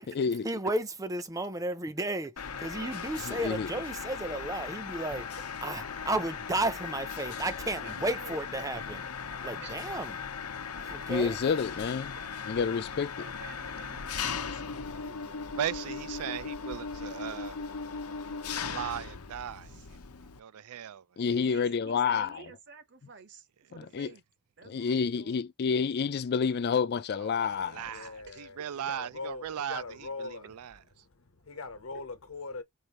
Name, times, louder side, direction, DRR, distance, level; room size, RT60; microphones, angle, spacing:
voice 1, 0.4-2.3 2.6-9.0 9.4-10.2 10.8-11.4, right 2 dB, 15° right, 0.6 m, -33 dB
Mechanisms, 2.4-20.4, left 5 dB, 85° left, 0.8 m, -38 dB
voice 2, 3.2-3.7 11.1-12.1 12.5-13.3 21.2-22.4 23.7-24.1 24.6-27.9, left 6 dB, 45° left, 0.4 m, -29 dB
voice 3, 7.8-8.4 9.6-10.0 11.0-11.3 13.2-15.5 16.2-16.3 19.6-20.0 21.4-24.2 24.6-25.4 28.3-28.4, right 5 dB, 55° right, 1.0 m, -51 dB
voice 4, 15.5-17.5 18.7-19.7 20.4-21.1 27.2-30.8, right 9 dB, 85° right, 0.4 m, -38 dB
voice 5, 27.9-30.6 31.0-32.6, left 3 dB, 65° left, 1.1 m, -42 dB
4.8 x 2.6 x 3.0 m
head